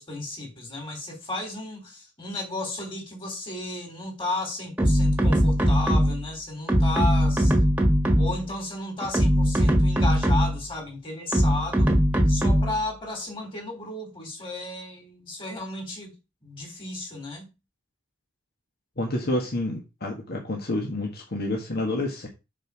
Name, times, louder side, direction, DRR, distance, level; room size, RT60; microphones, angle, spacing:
voice 1, 0.0-7.5 8.2-11.9 12.3-16.1 16.4-17.5, left 2 dB, 25° left, 3.6 m, -34 dB
sound 1, 4.8-6.3 6.7-8.5 9.0-10.7 11.3-12.8, equal, 10° right, 1.6 m, -21 dB
voice 2, 19.0-22.3, left 1 dB, 55° left, 1.7 m, -29 dB
6.7 x 6.3 x 4.9 m
head